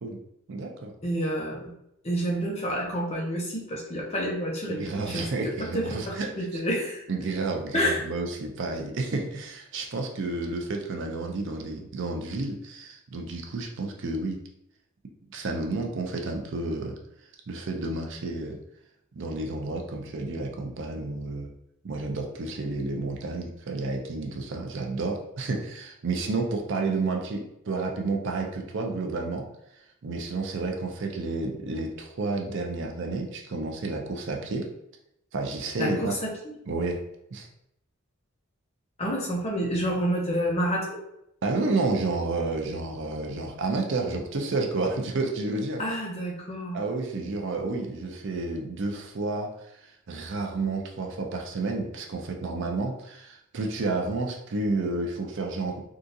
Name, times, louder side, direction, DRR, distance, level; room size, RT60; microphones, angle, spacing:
voice 1, 0.5-0.9 4.7-6.3 6.5-6.6 7.1-14.4 15.3-16.9 17.5-18.6 19.1-21.5 21.8-29.5 30.0-34.7 35.3-36.2 36.7-37.0 37.3-37.5 41.4-45.8 46.7-55.8, right 3 dB, 55° right, 2 dB, 0.5 m, -30 dB
voice 2, 1.0-1.7 2.0-7.1 7.7-8.0 35.8-36.3 39.0-41.0 45.8-46.8, equal, 30° left, -2 dB, 0.7 m, -29 dB
3.7 x 2.4 x 2.7 m, 0.79 s
head